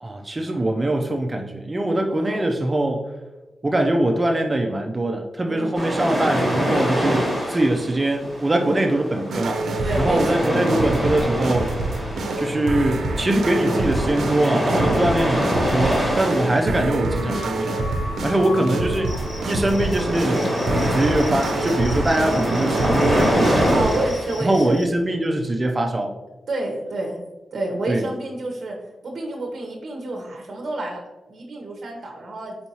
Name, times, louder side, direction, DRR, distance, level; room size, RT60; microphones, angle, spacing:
voice 1, 0.0-3.1 3.6-9.6 10.0-11.7 12.4-17.7 18.2-19.1 19.4-20.6 20.9-23.9 24.4-26.1 27.9-28.0, right 1 dB, 20° right, 3 dB, 0.3 m, -22 dB
voice 2, 2.1-2.4 5.5-5.8 8.6-8.8 9.8-10.4 14.8-15.2 16.4-16.6 18.4-18.7 23.7-24.8 26.5-27.2 27.5-32.6, right 2 dB, 45° right, -1 dB, 0.7 m, -29 dB
sound 1, 5.7-24.7, equal, 5° left, 1.3 m, -26 dB
sound 2, 9.3-23.9, right 2 dB, 75° right, 0.5 m, -27 dB
Cricket, 19.1-24.9, left 2 dB, 35° left, 0.7 m, -40 dB
4.5 x 4.3 x 2.8 m, 1.1 s
wide cardioid pair, 175°, 0 cm